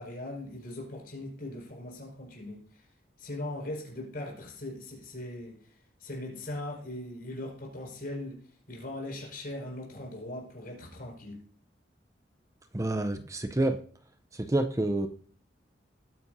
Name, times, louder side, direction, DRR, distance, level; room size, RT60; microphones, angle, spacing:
voice 1, 0.0-2.6 3.2-5.6 6.0-8.4 8.7-11.4, left 1 dB, 55° left, -1 dB, 5.2 m, -39 dB
voice 2, 12.7-13.8 14.5-15.1, right 2 dB, 15° right, 8 dB, 0.6 m, -27 dB
19.5 x 9.5 x 2.7 m, 0.43 s
head